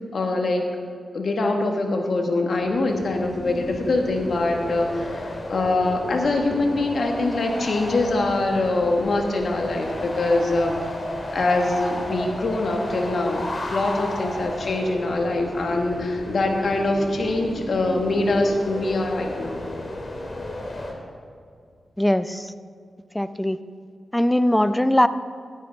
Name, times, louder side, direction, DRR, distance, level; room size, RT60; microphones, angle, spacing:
voice 1, 0.1-0.6 1.1-10.7 11.3-19.6, left 2 dB, 65° left, 3 dB, 1.6 m, -23 dB
sound 1, 2.6-20.9, left 1 dB, 45° left, 2.2 m, -33 dB
voice 2, 22.0-22.5 23.1-23.6 24.1-25.1, left 1 dB, 10° left, 13 dB, 0.6 m, -20 dB
16.0 x 9.9 x 3.5 m, 2.2 s
cardioid pair, 45°, 0 cm